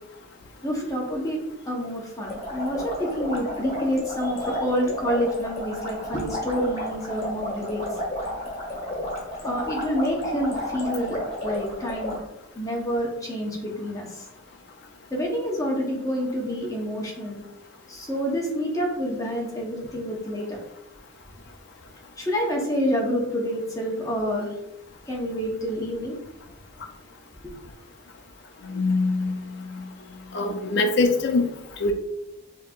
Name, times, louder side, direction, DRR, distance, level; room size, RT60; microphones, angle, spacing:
voice 1, 0.6-1.4 1.7-7.9 9.4-12.2 12.5-14.3 15.1-17.4 17.9-20.6 22.2-24.5 25.1-26.2 27.4-27.5, equal, 15° left, -1 dB, 0.8 m, -28 dB
sound 1, 2.2-12.2, equal, 35° left, 1.6 m, -32 dB
voice 2, 28.7-29.3 30.3-31.5 31.8-31.9, left 3 dB, 60° left, 4 dB, 0.5 m, -22 dB
6.4 x 2.8 x 2.4 m, 0.85 s
head